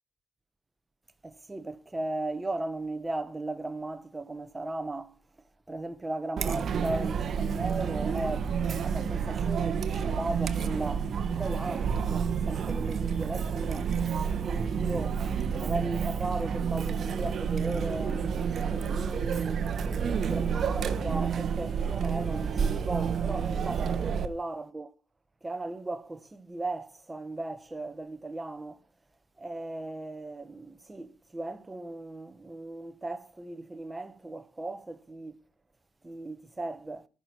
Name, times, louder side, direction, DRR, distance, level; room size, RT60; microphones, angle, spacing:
voice 1, 1.2-5.1 5.7-8.5 8.8-13.9 14.2-15.2 15.5-19.6 20.0-24.9 25.4-28.8 29.4-35.3 36.0-37.1, right 2 dB, 15° right, 0.9 m, -37 dB
Chatter, 6.4-24.3, right 7 dB, 40° right, 1.0 m, -29 dB
14.0 x 6.1 x 5.3 m
cardioid pair, 115°, 0 cm